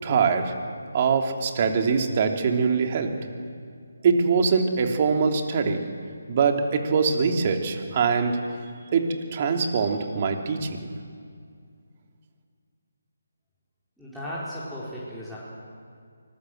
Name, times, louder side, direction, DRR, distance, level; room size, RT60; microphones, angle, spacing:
voice 1, 0.0-0.6 0.9-3.1 4.0-5.8 6.3-8.4 8.9-10.8, right 5 dB, 35° right, 4 dB, 3.0 m, -23 dB
voice 2, 14.0-15.4, equal, ahead, -10 dB, 4.6 m, -35 dB
25.5 x 20.0 x 8.0 m, 2.2 s
figure-of-eight pair, 155°, 0 cm